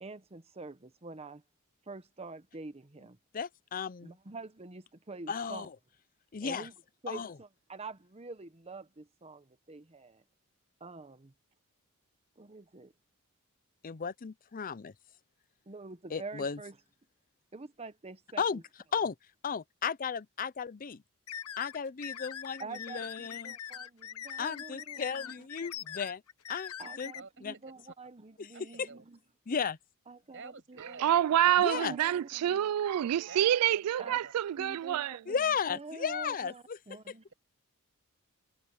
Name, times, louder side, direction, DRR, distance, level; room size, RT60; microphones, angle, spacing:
voice 1, 0.0-1.4 1.9-3.2 4.0-5.7 6.4-6.7 7.0-10.2 10.8-11.3 12.4-12.9 15.7-16.8 17.5-18.6 22.6-25.3 25.6-25.8 26.8-29.2 30.1-31.0 31.7-32.7 34.0-34.2 34.6-37.2, right 3 dB, 25° right, 0.9 m, -46 dB
voice 2, 3.3-4.2 5.3-5.7 6.3-6.7 7.1-7.3 13.8-14.9 16.1-16.6 18.4-18.6 18.9-19.1 19.4-21.0 21.6-23.5 24.4-26.2 26.5-27.1 27.4-27.5 28.4-28.5 28.8-28.9 29.5-29.8 31.6-31.9 35.3-36.8, left 6 dB, 40° left, 0.5 m, -34 dB
sound 1, 21.3-27.2, left 9 dB, 75° left, 1.0 m, -42 dB
voice 3, 27.1-27.7 28.5-29.0 30.3-31.2 33.3-33.5 34.0-34.3, right 4 dB, 55° right, 7.9 m, -49 dB
voice 4, 30.8-35.2, right 11 dB, 85° right, 0.3 m, -27 dB
head